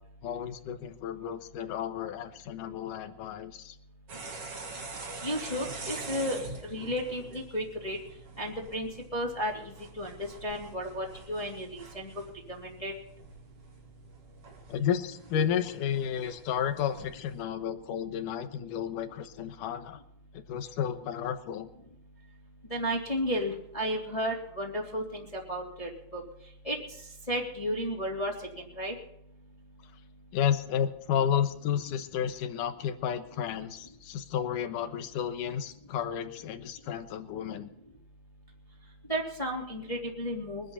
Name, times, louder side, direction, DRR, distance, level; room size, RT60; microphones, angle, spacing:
voice 1, 0.2-3.8 14.7-20.0 20.3-21.7 30.3-37.7, left 9 dB, 70° left, 9 dB, 2.5 m, -32 dB
sound 1, 4.1-17.4, right 3 dB, 40° right, 3.1 m, -45 dB
voice 2, 5.2-8.0 8.4-12.1 12.5-12.9 22.7-26.2 26.6-26.8 27.3-28.9 39.1-40.7, equal, 10° left, -1 dB, 2.2 m, -33 dB
23.5 x 11.0 x 4.2 m, 0.79 s
omnidirectional pair, 4.3 m